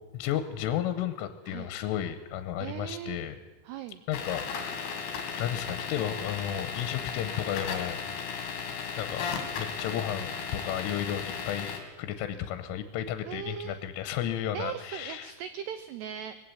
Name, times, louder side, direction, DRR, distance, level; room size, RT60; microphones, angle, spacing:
voice 1, 0.1-3.4 4.1-4.5 5.3-8.2 9.0-9.3 9.6-15.3, left 10 dB, 90° left, 11 dB, 3.5 m, -33 dB
voice 2, 2.6-3.2 3.6-4.0 13.3-13.8 14.5-16.4, right 10 dB, 80° right, 12 dB, 2.4 m, -39 dB
sound 1, 4.1-11.8, left 5 dB, 55° left, 4.3 m, -35 dB
21.0 x 16.0 x 8.6 m, 1.3 s
omnidirectional pair, 5.7 m